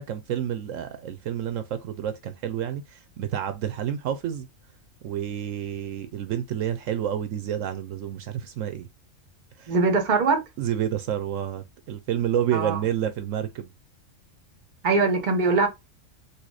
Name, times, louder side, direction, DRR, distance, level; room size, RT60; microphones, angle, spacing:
voice 1, 0.0-4.5 5.0-8.9 9.6-9.7 10.6-13.7, right 10 dB, 75° right, 0.9 m, -29 dB
voice 2, 9.7-10.4 12.5-12.8 14.8-15.7, right 4 dB, 40° right, 0.9 m, -21 dB
4.2 x 2.5 x 4.7 m
omnidirectional pair, 1.4 m